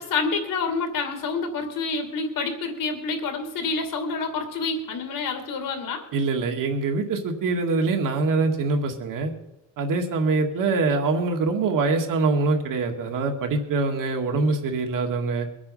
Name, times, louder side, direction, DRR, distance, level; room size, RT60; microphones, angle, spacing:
voice 1, 0.0-6.0, left 4 dB, 85° left, 5 dB, 2.8 m, -28 dB
voice 2, 6.1-9.3 9.8-15.5, right 3 dB, 80° right, 3 dB, 2.2 m, -24 dB
22.0 x 8.7 x 5.6 m, 0.89 s
wide cardioid pair, 180°, 32 cm